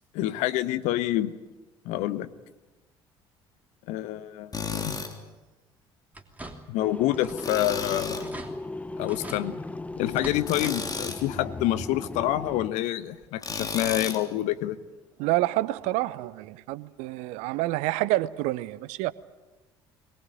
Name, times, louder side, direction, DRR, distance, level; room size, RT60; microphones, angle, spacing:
voice 1, 0.1-1.3 1.8-2.3 3.9-5.0 6.7-8.3 9.0-9.6 10.0-14.8, left 14 dB, 60° left, 1.1 m, -27 dB
Tools, 4.5-5.1 7.4-8.3 10.4-11.2 13.4-14.2, left 4 dB, 25° left, 3.4 m, -33 dB
sound 1, 6.1-6.8 7.1-7.6 7.9-8.0 8.2-8.5 9.1-9.4 10.1-10.8 11.1-11.2 12.6-12.7 13.2-13.3, right 1 dB, 10° right, 3.0 m, -42 dB
sound 2, 6.8-12.7, left 2 dB, 10° left, 0.9 m, -37 dB
voice 2, 15.2-19.1, right 17 dB, 60° right, 0.8 m, -28 dB
22.0 x 19.5 x 9.3 m
figure-of-eight pair, 55°, 14 cm